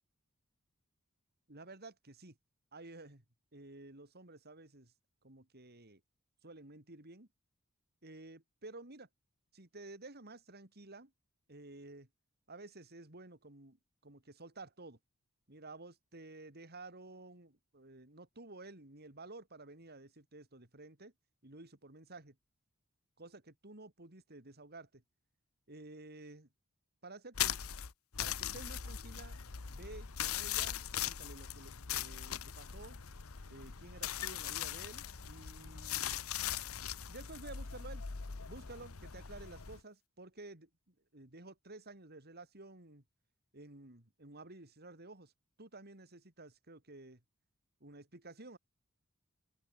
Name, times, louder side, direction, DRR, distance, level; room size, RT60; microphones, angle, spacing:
voice 1, 1.5-2.4 2.7-3.2 3.5-4.9 5.2-6.0 6.4-7.3 8.0-9.1 9.5-11.1 11.5-12.1 12.5-13.8 14.0-15.0 15.5-21.1 21.4-22.4 23.2-25.0 25.7-26.5 27.0-27.6 28.2-29.4 29.7-33.0 33.5-36.2 37.1-38.0 38.5-40.7 41.1-43.0 43.5-45.3 45.6-47.2 47.8-48.6, right 2 dB, 50° right, 4.2 m, -52 dB
sound 1, 27.3-39.8, left 10 dB, 75° left, 1.1 m, -40 dB
open air
head